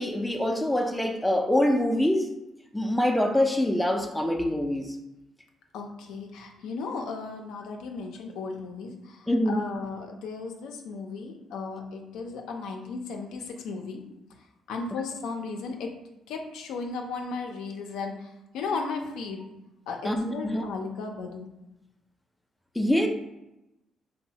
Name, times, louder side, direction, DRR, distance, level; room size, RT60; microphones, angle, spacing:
voice 1, 0.0-2.3 2.7-4.9 9.3-9.6 20.0-20.6 22.8-23.1, left 1 dB, 5° left, 4 dB, 0.3 m, -25 dB
voice 2, 5.7-14.0 14.7-15.9 16.3-19.4 19.9-21.5, left 4 dB, 90° left, 2 dB, 0.4 m, -35 dB
3.0 x 2.0 x 2.7 m, 0.93 s
cardioid pair, 90°, 0 cm